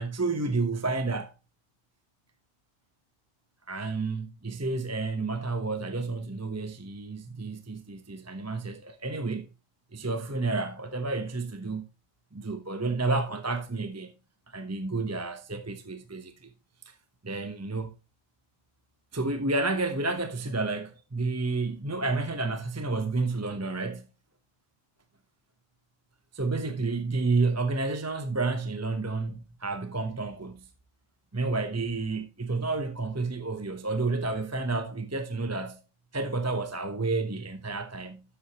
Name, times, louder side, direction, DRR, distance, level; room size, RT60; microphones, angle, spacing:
voice 1, 0.0-1.3 3.7-9.5 9.9-11.9 12.3-14.1 14.5-16.5 17.2-17.9 19.1-24.1 26.3-30.7 31.3-35.8 36.1-38.2, right 3 dB, 15° right, 0.8 m, -30 dB
12.0 x 8.0 x 2.9 m
omnidirectional pair, 1.4 m